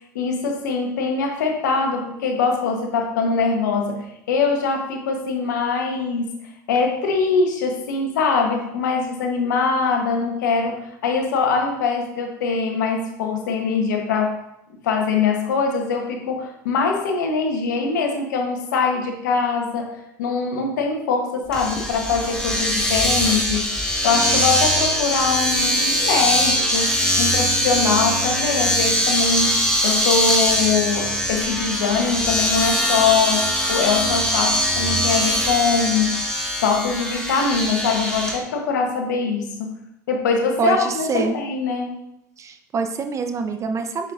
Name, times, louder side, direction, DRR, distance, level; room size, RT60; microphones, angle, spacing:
voice 1, 0.1-14.4 14.8-19.9 20.2-36.2 36.6-39.7 40.1-41.9, left 5 dB, 85° left, 3 dB, 1.2 m, -22 dB
Domestic sounds home sounds, 21.5-38.3, equal, 10° left, 1.8 m, -22 dB
voice 2, 40.6-41.4 42.4-44.1, right 4 dB, 30° right, 7 dB, 0.7 m, -25 dB
6.3 x 6.3 x 2.6 m, 0.82 s
hypercardioid pair, 95°, 10 cm